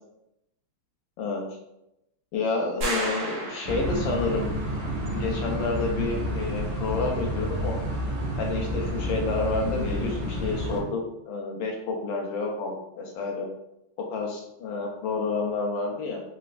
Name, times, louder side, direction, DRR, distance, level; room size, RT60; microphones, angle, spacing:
voice 1, 2.3-4.5 5.1-7.8 8.4-11.0 11.3-13.5 14.1-16.2, left 3 dB, 75° left, 1 dB, 1.2 m, -29 dB
sound 1, 2.8-4.3, right 1 dB, 80° right, 0.8 m, -32 dB
sound 2, 3.6-10.8, equal, 65° right, 1.2 m, -30 dB
3.9 x 2.3 x 2.4 m, 0.85 s
omnidirectional pair, 2.3 m